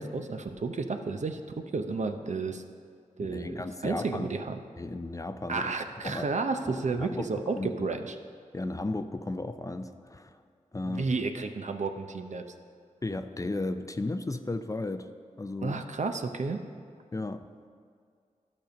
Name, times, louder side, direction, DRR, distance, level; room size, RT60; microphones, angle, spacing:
voice 1, 0.0-1.4 1.7-2.6 3.2-4.6 5.5-8.1 10.8-12.4 15.6-16.6, right 4 dB, 60° right, 6 dB, 0.7 m, -32 dB
voice 2, 3.3-4.3 4.8-5.8 6.0-6.3 7.0-7.3 7.6-7.9 8.5-10.4 10.7-11.1 13.0-15.1 15.4-15.8 17.1-17.7, left 2 dB, 25° left, 9 dB, 0.5 m, -34 dB
12.0 x 5.3 x 5.2 m, 2.2 s
cardioid pair, 50°, 14 cm